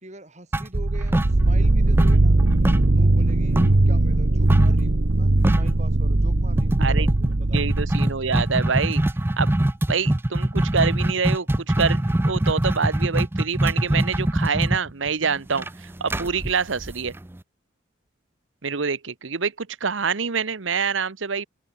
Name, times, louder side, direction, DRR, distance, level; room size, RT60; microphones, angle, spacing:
voice 1, 0.0-2.4 3.0-3.6 3.9-7.9, right 1 dB, 35° right, 4.5 m, -43 dB
sound 1, 0.5-1.7 2.0-3.9 4.5-4.8 5.1-5.2 5.4-5.8 6.6-17.4, right 1 dB, 10° right, 0.4 m, -23 dB
sound 2, 0.7-8.6, right 2 dB, 60° right, 1.1 m, -20 dB
voice 2, 7.5-9.0 9.4-9.5 9.9-17.1 18.6-21.5, right 5 dB, 85° right, 1.0 m, -26 dB
open air
head